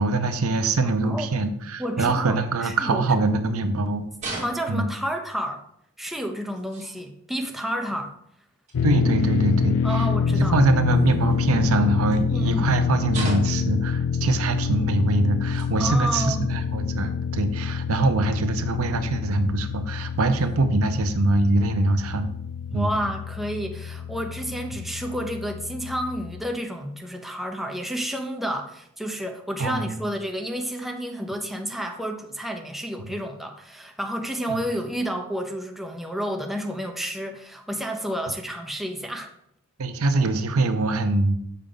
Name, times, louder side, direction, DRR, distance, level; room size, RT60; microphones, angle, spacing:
voice 1, 0.0-4.1 4.7-4.9 8.8-10.0 10.3-22.3 22.7-22.9 24.7-24.8 29.6-30.0 33.0-33.1 34.5-34.6 39.8-41.4, right 2 dB, 70° right, 9 dB, 0.6 m, -23 dB
voice 2, 1.8-3.2 4.3-5.6 6.0-8.1 9.8-10.6 12.3-12.7 15.8-16.5 22.7-39.3, equal, ahead, 3 dB, 0.6 m, -30 dB
sound 1, 4.2-5.0 6.1-6.2 6.5-7.1 8.7-8.8 10.9-11.5 12.1-12.2 13.1-13.7 14.7-14.8 15.3-15.9 16.3-16.4 17.5-17.6 18.8-18.9 20.2-20.6, right 2 dB, 30° right, 1.9 m, -37 dB
sound 2, 8.7-26.4, left 6 dB, 70° left, 0.4 m, -27 dB
6.7 x 4.8 x 3.8 m, 0.72 s
head